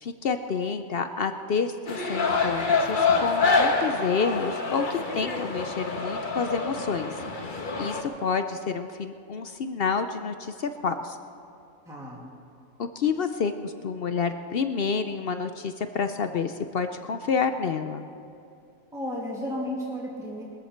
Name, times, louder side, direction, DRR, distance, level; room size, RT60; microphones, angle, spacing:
voice 1, 0.0-7.1 7.8-11.2 12.8-18.0, left 5 dB, 55° left, 8 dB, 0.6 m, -29 dB
sound 1, 1.9-8.0, left 4 dB, 35° left, 1.3 m, -26 dB
voice 2, 11.9-12.3 18.9-20.4, equal, ahead, -6 dB, 2.5 m, -33 dB
21.5 x 14.0 x 4.5 m, 2.7 s
omnidirectional pair, 1.5 m